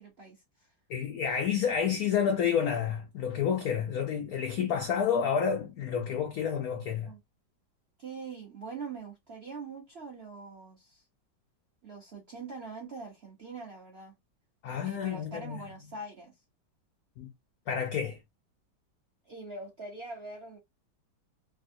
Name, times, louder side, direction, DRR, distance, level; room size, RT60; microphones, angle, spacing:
voice 1, 0.0-0.7 7.0-7.2 8.0-11.0 11.8-14.1 14.8-16.3 19.2-20.6, right 4 dB, 60° right, 0.6 m, -43 dB
voice 2, 0.9-7.1 14.6-15.6 17.2-17.3 17.7-18.2, left 7 dB, 90° left, 0.7 m, -29 dB
3.4 x 2.3 x 2.6 m
omnidirectional pair, 2.2 m